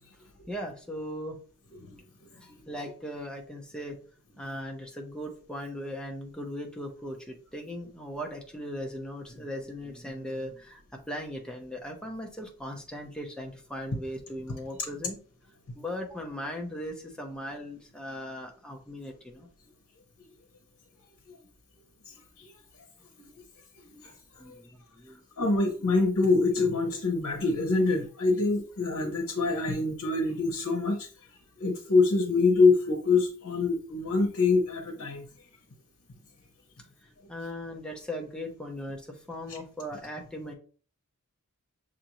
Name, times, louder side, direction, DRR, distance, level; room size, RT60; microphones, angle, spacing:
voice 1, 0.5-1.4 2.4-4.0 4.4-15.2 15.7-19.5 24.4-25.2 37.0-40.5, equal, 5° left, 1 dB, 0.6 m, -38 dB
voice 2, 22.1-22.5 23.2-23.3 23.8-24.1 24.4-24.6 25.4-31.1 31.6-35.3 39.5-39.6, left 3 dB, 85° left, 1 dB, 0.8 m, -25 dB
6.5 x 2.5 x 2.9 m, 0.41 s
head